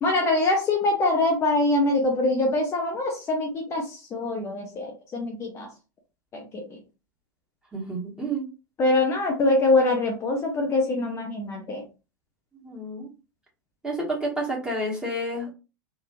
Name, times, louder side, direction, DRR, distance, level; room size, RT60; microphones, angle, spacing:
voice 1, 0.0-5.7 6.3-6.6 8.8-11.8, left 2 dB, 25° left, 2 dB, 0.7 m, -24 dB
voice 2, 7.7-8.5 12.6-13.1 13.8-15.5, right 1 dB, 5° right, -3 dB, 1.3 m, -30 dB
3.3 x 2.1 x 2.6 m, 0.31 s
figure-of-eight pair, 90°, 11 cm